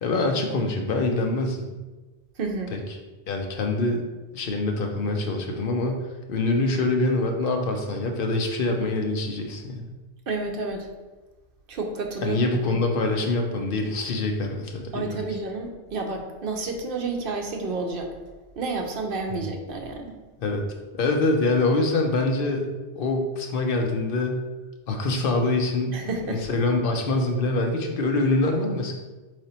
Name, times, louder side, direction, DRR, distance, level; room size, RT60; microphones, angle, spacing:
voice 1, 0.0-1.7 2.7-2.8 3.3-4.0 4.3-9.9 12.2-15.2 19.3-19.4 20.4-20.6 20.9-22.7 23.0-24.4 24.9-28.9, left 2 dB, 65° left, 3 dB, 0.8 m, -25 dB
voice 2, 2.4-2.8 10.3-10.9 11.7-12.4 14.9-18.1 18.6-20.2 25.9-26.4, right 3 dB, 65° right, 3 dB, 0.8 m, -30 dB
3.9 x 3.3 x 4.2 m, 1.2 s
omnidirectional pair, 1.0 m